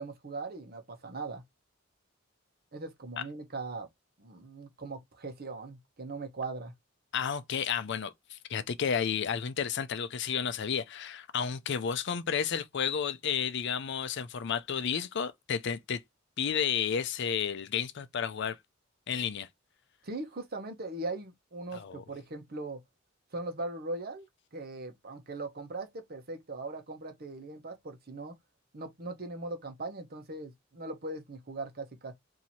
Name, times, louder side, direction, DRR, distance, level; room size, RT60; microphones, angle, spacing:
voice 1, 0.0-1.4 2.7-3.9 4.2-6.7 20.0-22.8 23.3-24.3 24.5-28.3 28.7-32.1, right 2 dB, 50° right, 1.0 m, -40 dB
voice 2, 7.1-16.0 16.4-18.6 19.1-19.5 21.7-22.0, left 7 dB, 60° left, 0.5 m, -32 dB
3.0 x 2.8 x 4.1 m
head